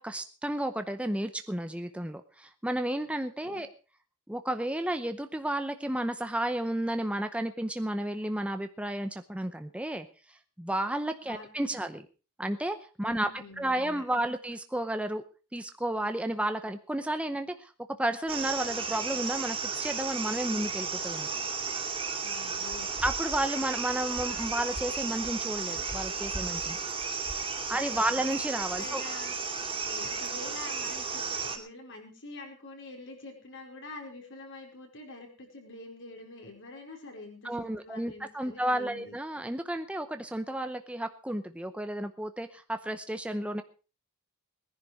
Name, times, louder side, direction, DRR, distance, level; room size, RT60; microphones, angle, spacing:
voice 1, 0.0-3.7 4.3-10.1 10.6-12.1 12.4-15.2 15.5-17.7 18.0-21.3 23.0-26.8 27.7-29.0 37.4-43.6, right 1 dB, 5° right, 8 dB, 0.7 m, -32 dB
voice 2, 11.2-11.8 13.0-14.0 22.2-22.9 27.7-28.2 28.7-29.3 29.8-39.2, left 2 dB, 60° left, 2 dB, 4.8 m, -46 dB
sound 1, 18.3-31.6, right 5 dB, 25° right, 2.8 m, -34 dB
19.5 x 10.5 x 4.8 m, 0.36 s
head